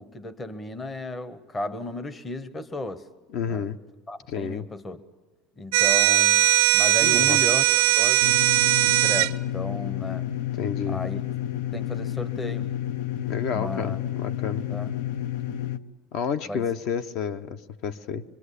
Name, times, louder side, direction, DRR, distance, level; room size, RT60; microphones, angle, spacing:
voice 1, 0.0-3.1 3.5-3.7 4.1-5.0 5.6-6.4 6.7-7.6 7.9-10.3 10.9-11.2 11.7-12.7 13.5-14.0 14.7-14.9 16.5-16.7, left 1 dB, 15° left, 0.9 m, -34 dB
voice 2, 3.3-3.8 4.3-4.7 7.0-7.4 10.6-11.0 13.3-14.6 16.1-18.2, left 7 dB, 50° left, 0.9 m, -30 dB
sound 1, 5.7-9.3, right 19 dB, 85° right, 0.7 m, -19 dB
sound 2, 8.2-15.8, left 12 dB, 80° left, 0.8 m, -30 dB
25.5 x 24.0 x 8.3 m
cardioid pair, 170°, 0 cm